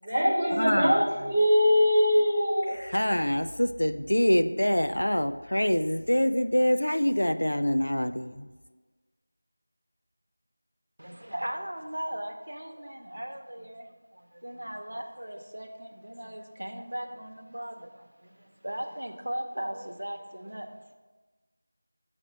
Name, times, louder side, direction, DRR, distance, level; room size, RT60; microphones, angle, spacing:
voice 1, 0.0-2.8, equal, 5° right, -9 dB, 1.5 m, -22 dB
voice 2, 0.6-1.0 2.9-8.5, left 1 dB, 80° left, 9 dB, 0.4 m, -25 dB
voice 3, 11.0-20.7, right 1 dB, 80° right, 5 dB, 0.8 m, -38 dB
8.3 x 3.3 x 5.2 m, 1.3 s
figure-of-eight pair, 175°, 0 cm